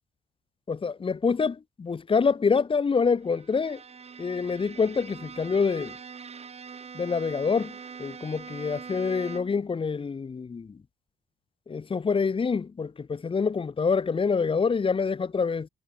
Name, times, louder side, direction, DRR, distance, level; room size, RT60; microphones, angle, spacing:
voice 1, 0.7-3.8 4.2-6.0 6.9-10.8 11.7-15.7, left 5 dB, 25° left, 0.8 m, -26 dB
Bowed string instrument, 3.2-9.7, right 6 dB, 30° right, 0.8 m, -43 dB
cardioid pair, 90°, 20 cm